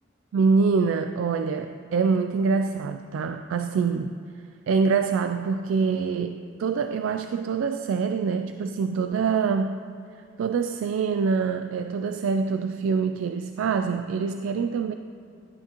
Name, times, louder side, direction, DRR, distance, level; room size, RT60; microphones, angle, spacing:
voice 1, 0.3-4.2 4.7-9.9 10.4-14.9, right 5 dB, 85° right, 8 dB, 0.3 m, -25 dB
11.5 x 9.1 x 2.9 m, 2.5 s
head